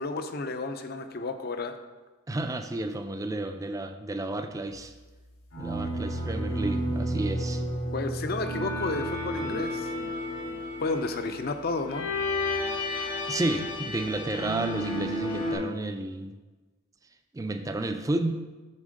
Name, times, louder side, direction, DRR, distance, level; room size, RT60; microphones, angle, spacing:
voice 1, 0.0-1.8 7.9-9.9 10.8-12.1, left 3 dB, 50° left, 8 dB, 0.5 m, -31 dB
voice 2, 2.3-4.9 5.6-7.6 13.3-16.4 17.3-18.3, right 2 dB, 15° right, 7 dB, 0.4 m, -31 dB
sound 1, 5.5-15.5, left 1 dB, 75° left, 2.5 m, -32 dB
7.3 x 3.6 x 6.4 m, 1.3 s
head